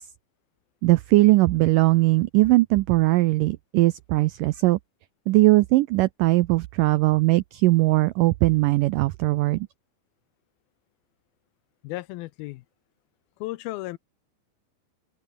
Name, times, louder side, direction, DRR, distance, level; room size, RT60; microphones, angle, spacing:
voice 1, 0.8-4.8 5.3-9.7, right 19 dB, 90° right, 1.9 m, -20 dB
voice 2, 11.8-12.6 13.4-14.0, left 18 dB, 80° left, 2.4 m, -34 dB
open air
omnidirectional pair, 4.5 m